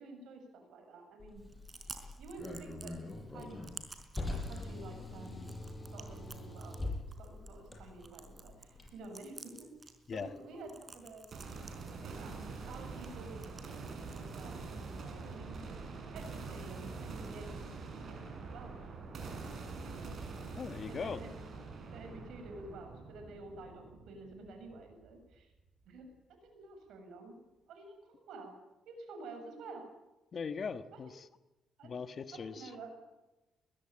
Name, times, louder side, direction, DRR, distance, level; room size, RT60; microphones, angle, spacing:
voice 1, 0.0-1.4 2.2-3.6 4.2-5.5 5.9-6.8 7.2-11.2 12.0-12.4 12.7-13.5 13.9-15.6 16.1-17.5 18.0-18.1 18.5-18.7 19.8-20.0 20.9-21.5 21.9-25.5 25.8-27.4 27.7-28.5 28.9-29.8 30.9-31.0 31.8-31.9 32.3-33.0, right 2 dB, 80° right, 5 dB, 7.8 m, -50 dB
Car, 1.2-8.9, left 2 dB, 20° left, 7.6 m, -43 dB
Chewing mastication, 1.4-15.4, right 3 dB, 30° right, 4.5 m, -55 dB
sound 1, 11.3-25.3, right 4 dB, 55° right, 7.0 m, -45 dB
voice 2, 20.5-21.2 30.3-31.2 31.8-32.7, left 5 dB, 45° left, 11 dB, 1.4 m, -40 dB
21.5 x 21.0 x 8.8 m, 1.0 s
cardioid pair, 90°, 0 cm